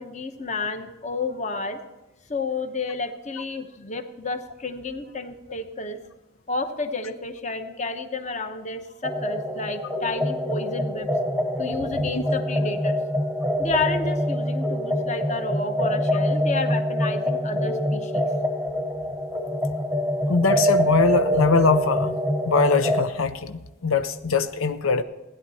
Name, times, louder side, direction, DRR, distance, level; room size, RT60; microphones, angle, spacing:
voice 1, 0.0-1.8 2.3-6.0 6.5-11.1 11.6-13.0 13.6-18.2, left 3 dB, 35° left, 8 dB, 1.0 m, -31 dB
sound 1, 9.0-23.1, equal, ahead, 1.1 m, -25 dB
voice 2, 20.3-22.2 22.5-25.0, left 4 dB, 90° left, 11 dB, 0.7 m, -22 dB
16.5 x 10.5 x 4.2 m, 1.1 s
head